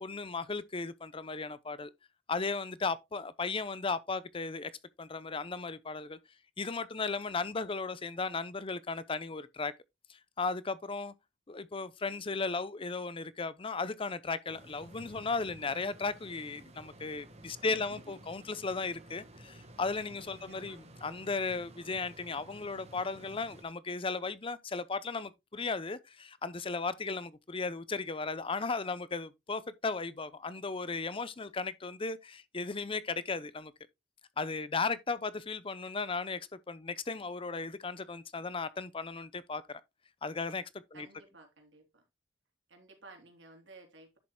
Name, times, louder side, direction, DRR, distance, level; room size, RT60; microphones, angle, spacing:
voice 1, 0.0-1.9 2.3-4.7 5.0-6.2 6.6-9.7 10.1-11.1 11.5-33.7 34.4-39.8 40.2-40.6 40.9-41.1, left 4 dB, 30° left, 0.6 m, -36 dB
sound 1, 14.5-23.6, right 1 dB, 35° right, 1.6 m, -53 dB
voice 2, 17.6-18.0 20.2-20.8 40.9-42.0 42.7-44.2, right 2 dB, 85° right, 3.5 m, -55 dB
10.5 x 7.5 x 2.2 m
head